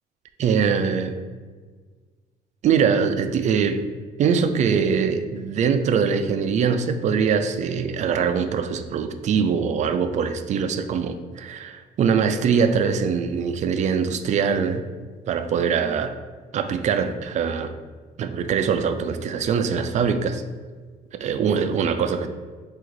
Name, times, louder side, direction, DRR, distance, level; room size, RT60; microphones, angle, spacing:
voice 1, 0.4-1.2 2.6-3.8 4.2-14.8 15.3-16.1 16.5-17.7 18.2-20.4 21.1-22.3, right 6 dB, 45° right, 9 dB, 0.4 m, -22 dB
3.9 x 2.5 x 4.6 m, 1.5 s
cardioid pair, 110°, 17 cm